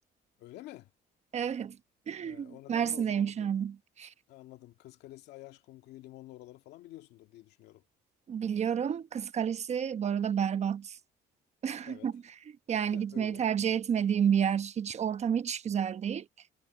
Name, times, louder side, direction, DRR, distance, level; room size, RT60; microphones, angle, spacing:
voice 1, 0.4-0.9 2.2-3.5 4.3-7.8 11.9-12.1 12.9-13.5, left 16 dB, 85° left, 2.1 m, -49 dB
voice 2, 1.3-1.8 2.1-4.1 8.3-11.0 11.6-12.1 12.7-16.3, right 8 dB, 40° right, 1.0 m, -30 dB
cardioid pair, 110°, 17 cm